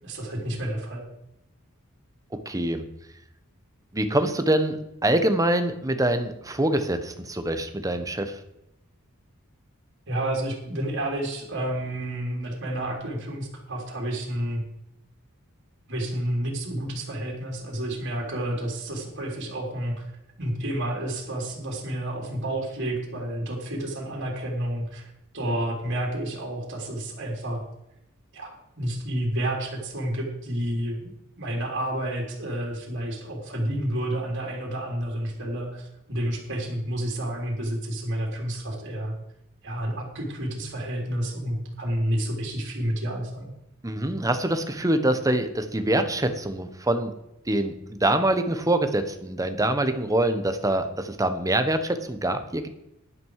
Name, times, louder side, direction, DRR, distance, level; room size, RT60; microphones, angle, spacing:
voice 1, 0.0-1.0 10.1-14.6 15.9-20.1 20.4-27.6 28.3-28.5 28.8-31.1 31.4-39.1 39.6-43.5, right 1 dB, 60° right, 0 dB, 3.5 m, -30 dB
voice 2, 2.4-2.8 3.9-4.8 5.0-8.4 43.8-47.1 47.5-52.7, right 1 dB, 15° right, 9 dB, 1.1 m, -25 dB
11.5 x 11.0 x 4.8 m, 0.84 s
head